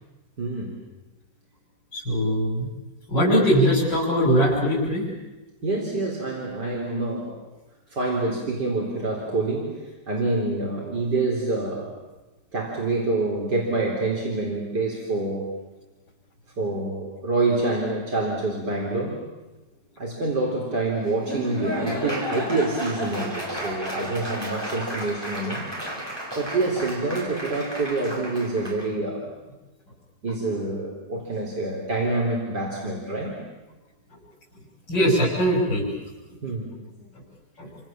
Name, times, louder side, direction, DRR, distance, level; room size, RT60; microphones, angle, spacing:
voice 1, 0.4-0.7 5.6-7.4 7.9-9.8 10.1-11.9 12.5-15.5 16.6-19.2 20.0-25.6 26.4-29.3 30.2-33.4 36.4-36.8, right 2 dB, 70° right, -2 dB, 4.4 m, -26 dB
voice 2, 1.9-2.7 3.1-5.0 34.9-35.9 37.6-37.7, equal, 85° left, -5 dB, 6.4 m, -21 dB
Laughter / Applause, 21.0-28.9, equal, 15° right, 5.6 m, -33 dB
29.0 x 26.5 x 7.5 m, 1.1 s
omnidirectional pair, 1.9 m